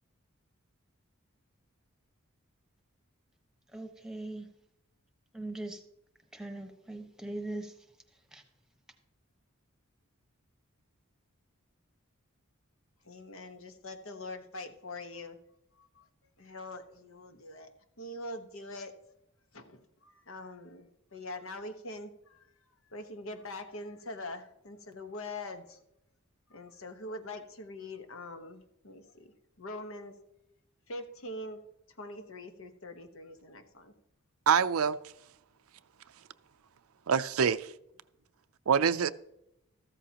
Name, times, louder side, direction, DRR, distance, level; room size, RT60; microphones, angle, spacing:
voice 1, 3.7-4.5 5.3-5.8 6.3-7.8 8.3-8.4, right 2 dB, 5° right, 1.2 m, -40 dB
voice 2, 13.0-15.4 15.8-16.1 16.4-17.7 18.0-18.9 19.5-25.8 26.5-30.1 30.9-31.6 31.9-33.9, left 2 dB, 70° left, 1.3 m, -43 dB
voice 3, 34.5-35.0 37.1-37.7 38.7-39.1, right 7 dB, 85° right, 0.5 m, -25 dB
14.0 x 13.0 x 2.9 m
head